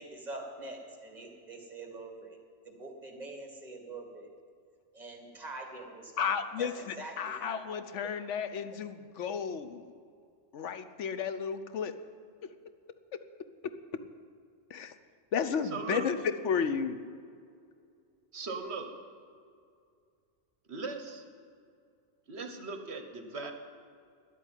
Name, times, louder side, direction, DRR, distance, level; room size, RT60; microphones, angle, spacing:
voice 1, 0.0-2.4 2.6-4.3 4.9-6.3 6.6-6.7 7.0-7.8, right 2 dB, 35° right, 2 dB, 2.1 m, -44 dB
voice 2, 6.2-9.9 10.5-11.9 12.4-12.5 14.7-14.9 15.3-17.0, left 6 dB, 75° left, 10 dB, 1.0 m, -33 dB
voice 3, 15.6-16.1 18.3-18.9 20.7-21.3 22.3-23.5, right 4 dB, 60° right, 6 dB, 1.3 m, -39 dB
11.0 x 8.4 x 9.2 m, 2.3 s
omnidirectional pair, 1.2 m